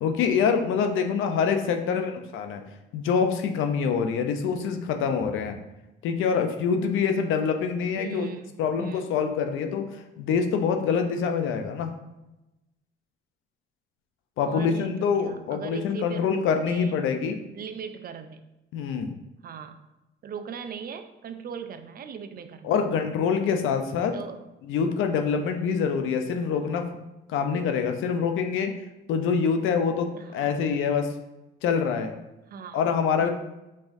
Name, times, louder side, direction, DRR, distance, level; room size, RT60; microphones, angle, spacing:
voice 1, 0.0-2.6 2.9-5.6 6.0-8.3 8.6-11.9 14.4-17.4 18.7-19.1 22.6-24.1 24.7-26.9 27.3-28.7 29.1-31.1 31.6-32.1 32.7-33.3, left 6 dB, 85° left, 6 dB, 0.6 m, -25 dB
voice 2, 1.8-2.2 8.0-9.0 14.4-17.0 17.5-18.4 19.4-19.8 20.2-22.8 24.1-24.4 25.6-25.9 30.1-30.6 32.5-32.8 33.2-33.3, right 6 dB, 50° right, 9 dB, 0.5 m, -39 dB
5.4 x 3.5 x 2.6 m, 0.96 s
cardioid pair, 90°, 20 cm